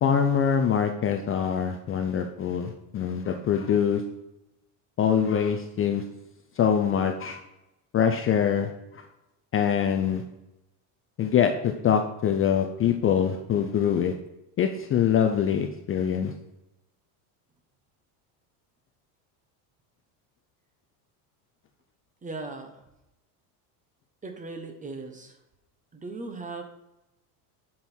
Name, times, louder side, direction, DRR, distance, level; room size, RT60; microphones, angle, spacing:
voice 1, 0.0-4.0 5.0-6.0 6.6-7.4 7.9-8.7 9.5-10.2 11.2-14.1 14.6-16.3, left 8 dB, 30° left, 5 dB, 0.5 m, -24 dB
voice 2, 22.2-22.8 24.2-25.3 25.9-26.6, right 3 dB, 15° right, 6 dB, 1.0 m, -38 dB
7.8 x 5.5 x 4.4 m, 0.91 s
supercardioid pair, 125°, 45 cm